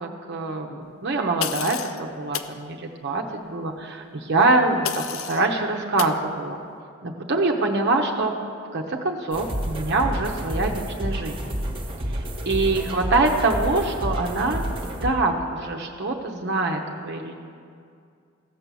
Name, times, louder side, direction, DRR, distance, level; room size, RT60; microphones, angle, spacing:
voice 1, 0.0-6.6 7.0-8.3 8.7-11.6 12.1-14.6 15.0-17.3, right 2 dB, 55° right, 2 dB, 0.8 m, -24 dB
sound 1, 1.4-2.0 2.3-2.5 4.8-5.5 6.0-6.2, left 9 dB, 70° left, 0.5 m, -30 dB
sound 2, 9.3-15.1, equal, 25° right, 1.0 m, -30 dB
14.5 x 6.1 x 6.8 m, 2.3 s
head